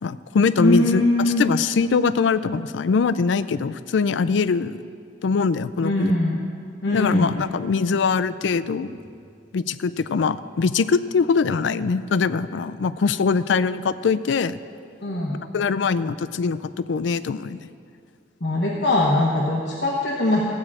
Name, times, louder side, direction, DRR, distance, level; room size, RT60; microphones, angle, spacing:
voice 1, 0.0-1.0 1.4-4.9 5.2-6.1 6.9-8.9 9.5-14.6 15.5-17.6, left 5 dB, 90° left, 14 dB, 0.4 m, -22 dB
voice 2, 0.6-1.4 5.8-6.4 6.8-7.4 15.0-15.4 18.4-20.4, left 1 dB, 65° left, -3 dB, 1.2 m, -21 dB
15.5 x 8.7 x 4.8 m, 2.3 s
head